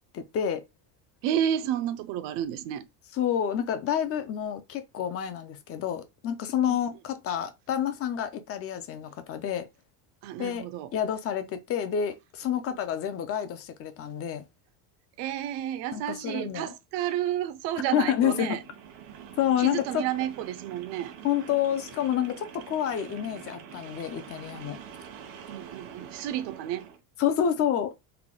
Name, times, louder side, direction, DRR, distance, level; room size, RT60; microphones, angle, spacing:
voice 1, 0.1-0.6 3.2-9.7 10.4-10.7 10.9-14.4 15.9-16.7 17.9-18.6 19.4-20.0 21.2-24.8 27.2-27.9, left 9 dB, 35° left, 0.4 m, -28 dB
voice 2, 1.2-2.9 10.2-10.9 15.2-18.6 19.6-21.1 25.5-26.9, right 11 dB, 60° right, 0.6 m, -31 dB
sound 1, 18.1-27.0, right 8 dB, 85° right, 1.1 m, -46 dB
3.4 x 2.2 x 3.7 m
cardioid pair, 150°, 46 cm